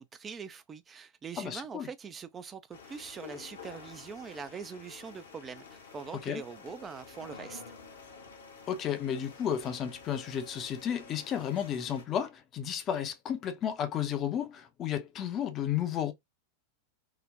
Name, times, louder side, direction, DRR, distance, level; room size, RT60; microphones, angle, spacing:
voice 1, 0.0-7.6, right 6 dB, 20° right, 0.3 m, -43 dB
voice 2, 1.4-1.9 6.2-6.4 8.7-16.1, left 9 dB, 30° left, 0.5 m, -33 dB
sound 1, 2.7-12.1, left 5 dB, 65° left, 0.7 m, -50 dB
3.7 x 2.0 x 2.5 m
figure-of-eight pair, 90°, 0 cm